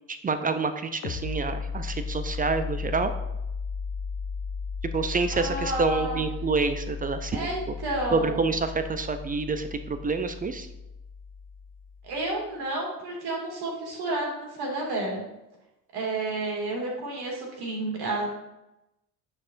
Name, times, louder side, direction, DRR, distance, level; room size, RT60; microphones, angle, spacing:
voice 1, 0.1-3.1 4.9-7.5 8.1-10.7, right 4 dB, 20° right, 9 dB, 0.4 m, -27 dB
sound 1, 1.0-12.4, left 5 dB, 30° left, 0.6 m, -35 dB
voice 2, 5.3-6.2 7.3-8.4 12.0-15.2 15.9-18.4, right 2 dB, 50° right, -1 dB, 2.3 m, -31 dB
9.5 x 4.4 x 2.6 m, 0.94 s
figure-of-eight pair, 50°, 48 cm